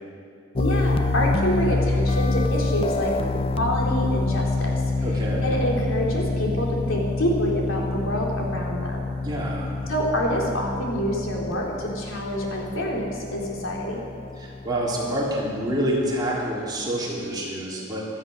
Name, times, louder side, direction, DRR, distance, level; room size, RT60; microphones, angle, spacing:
voice 1, 0.6-3.1 3.6-4.8 5.1-9.0 9.9-14.0, equal, 85° left, -2 dB, 3.5 m, -27 dB
sound 1, 0.6-16.4, left 2 dB, 30° left, 0.5 m, -27 dB
voice 2, 5.0-5.5 9.2-9.7 14.4-18.0, right 1 dB, 20° right, -5 dB, 3.5 m, -27 dB
16.0 x 13.5 x 6.3 m, 2.3 s
head